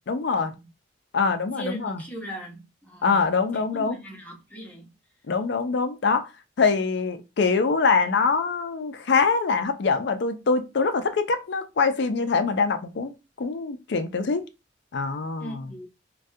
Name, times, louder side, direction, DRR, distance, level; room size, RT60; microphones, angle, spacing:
voice 1, 0.1-0.5 1.1-2.0 3.0-4.0 5.3-6.3 6.6-13.1 13.4-14.4 14.9-15.7, left 4 dB, 60° left, 0.4 m, -24 dB
voice 2, 1.6-3.2 3.5-4.9 15.4-15.9, right 1 dB, 10° left, 0.8 m, -39 dB
3.4 x 2.3 x 2.6 m
head